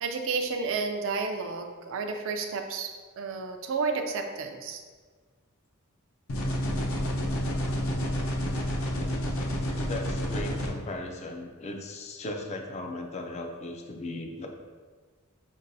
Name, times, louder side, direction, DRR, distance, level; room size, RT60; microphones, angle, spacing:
voice 1, 0.0-2.9 3.2-4.8, right 4 dB, 65° right, 5 dB, 0.4 m, -31 dB
sound 1, 6.3-10.7, equal, 70° left, 0.6 m, -29 dB
voice 2, 9.9-14.5, left 2 dB, 30° left, 3 dB, 0.4 m, -37 dB
5.4 x 3.0 x 2.6 m, 1.5 s
head